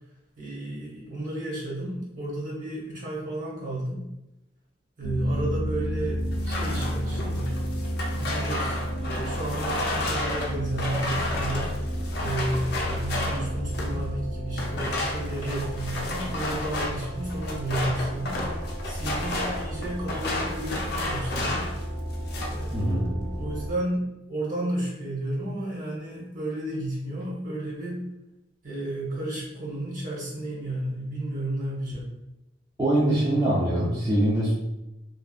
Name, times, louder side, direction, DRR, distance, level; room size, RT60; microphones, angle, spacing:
voice 1, 0.4-4.1 5.0-6.2 6.5-7.5 8.1-18.4 18.8-21.7 22.5-28.1 28.6-32.1, right 1 dB, 45° right, -6 dB, 0.9 m, -32 dB
sound 1, 5.0-23.7, equal, 90° right, 0.7 m, -32 dB
sound 2, 6.3-14.0 14.5-21.8 22.1-22.7, left 2 dB, 60° left, 0.5 m, -32 dB
voice 2, 22.7-23.1 32.8-34.5, right 1 dB, 20° right, -9 dB, 0.4 m, -23 dB
2.6 x 2.0 x 2.3 m, 0.93 s
head